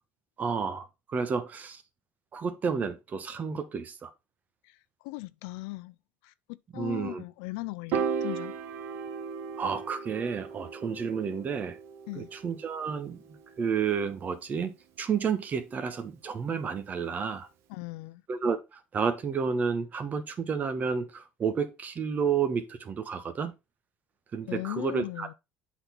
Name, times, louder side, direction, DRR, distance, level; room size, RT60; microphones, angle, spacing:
voice 1, 0.4-1.8 2.3-4.1 6.7-7.2 9.6-11.8 12.1-17.5 18.3-23.5 24.3-25.3, right 6 dB, 35° right, 1.3 m, -31 dB
voice 2, 5.0-6.0 6.2-8.6 12.1-12.3 17.7-18.2 24.5-25.3, left 22 dB, 85° left, 0.4 m, -38 dB
Piano, 7.9-14.3, right 6 dB, 70° right, 1.1 m, -36 dB
7.9 x 4.2 x 4.5 m
supercardioid pair, 105°, 5 cm